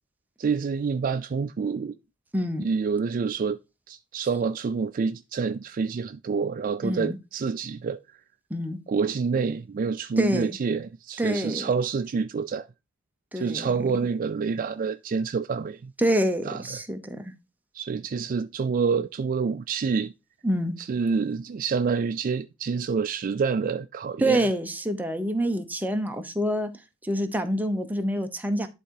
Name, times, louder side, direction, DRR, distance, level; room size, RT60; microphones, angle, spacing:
voice 1, 0.4-1.9 2.6-3.6 3.9-8.0 8.9-12.7 13.3-15.9 16.4-16.8 17.7-20.1 20.8-24.5, right 5 dB, 40° right, 0.3 m, -27 dB
voice 2, 2.3-2.7 6.8-7.2 8.5-8.8 10.2-10.6 11.2-11.7 13.3-13.7 16.0-17.3 20.4-20.7 24.2-26.7 27.0-28.7, equal, 10° right, 0.9 m, -26 dB
11.0 x 3.7 x 4.6 m
head